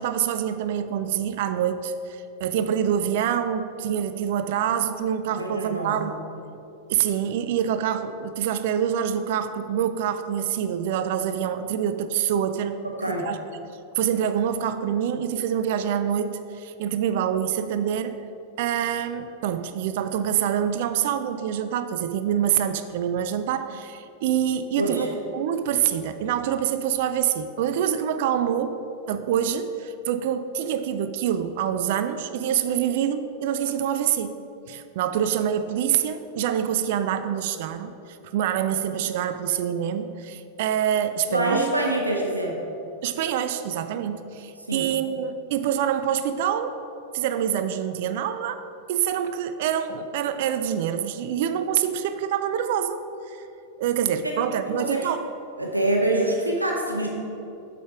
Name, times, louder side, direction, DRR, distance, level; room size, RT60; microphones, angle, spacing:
voice 1, 0.0-6.1 6.9-12.8 13.1-13.4 13.9-18.2 18.6-28.8 29.1-34.4 34.7-41.7 43.0-46.8 47.1-48.6 48.9-53.5 53.8-55.3, right 9 dB, 50° right, 10 dB, 0.3 m, -26 dB
voice 2, 5.3-6.1 12.8-13.3 24.8-25.1 41.3-42.6 44.7-44.8 54.2-54.4 54.8-55.1 55.6-57.1, right 1 dB, 85° right, -1 dB, 1.0 m, -25 dB
7.8 x 5.0 x 4.9 m, 2.8 s
figure-of-eight pair, 90°, 0 cm